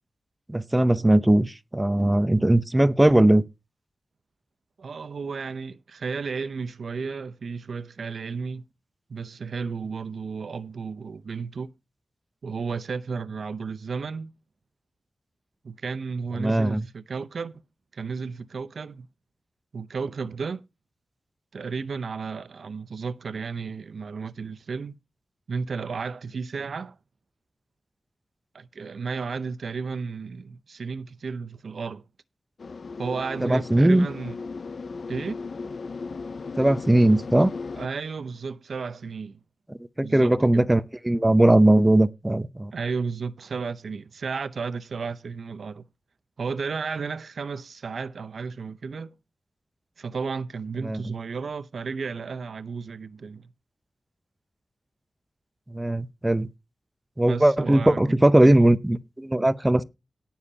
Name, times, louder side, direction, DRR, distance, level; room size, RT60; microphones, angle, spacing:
voice 1, 0.5-3.4 16.4-16.9 33.4-34.1 36.6-37.5 39.7-42.7 50.8-51.0 55.7-56.5 57.2-59.8, right 1 dB, 15° right, 0.7 m, -19 dB
voice 2, 4.8-8.6 9.1-11.7 12.4-14.3 15.6-17.6 17.9-19.1 19.7-20.6 21.5-25.0 25.5-27.0 28.5-32.0 33.0-34.3 35.1-35.4 37.8-39.4 40.0-40.5 42.7-45.9 46.4-49.1 50.0-53.5 57.2-58.1 58.4-58.7, right 5 dB, 75° right, 0.7 m, -33 dB
sound 1, 32.6-37.9, left 4 dB, 60° left, 0.5 m, -36 dB
18.0 x 7.2 x 2.8 m
wide cardioid pair, 135°, 0 cm